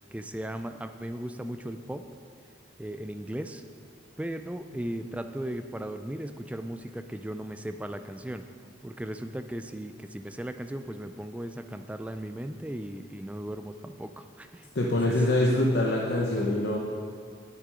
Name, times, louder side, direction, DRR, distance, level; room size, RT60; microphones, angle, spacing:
voice 1, 0.1-2.1 2.8-3.6 4.2-8.5 8.8-15.3, right 1 dB, 5° right, 8 dB, 0.3 m, -37 dB
voice 2, 14.7-16.8, left 1 dB, 65° left, -2 dB, 0.9 m, -24 dB
9.4 x 8.8 x 4.9 m, 2.2 s
head